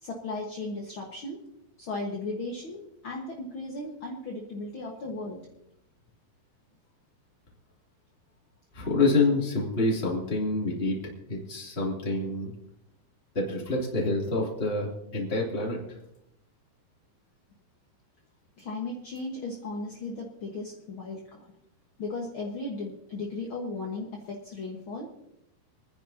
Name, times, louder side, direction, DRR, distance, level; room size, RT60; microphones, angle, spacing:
voice 1, 0.0-1.4 1.8-5.4 18.6-21.4 22.0-25.2, left 2 dB, 60° left, -2 dB, 1.4 m, -36 dB
voice 2, 8.7-11.0 11.3-12.5 13.3-15.8, left 2 dB, 15° left, -3 dB, 2.5 m, -27 dB
27.0 x 10.5 x 2.8 m, 0.81 s
omnidirectional pair, 4.6 m